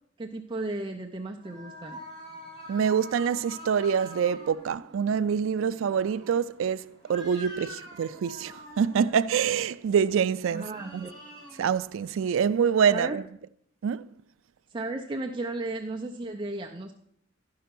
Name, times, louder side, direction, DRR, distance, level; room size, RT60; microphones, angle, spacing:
voice 1, 0.2-2.0 10.5-11.1 12.9-13.2 14.7-16.9, right 2 dB, 25° right, 0.5 m, -34 dB
sound 1, 1.4-13.1, equal, 25° left, 2.2 m, -47 dB
voice 2, 2.7-11.1 11.6-13.2 13.8-14.1, right 7 dB, 80° right, 0.3 m, -26 dB
11.5 x 5.6 x 5.9 m
head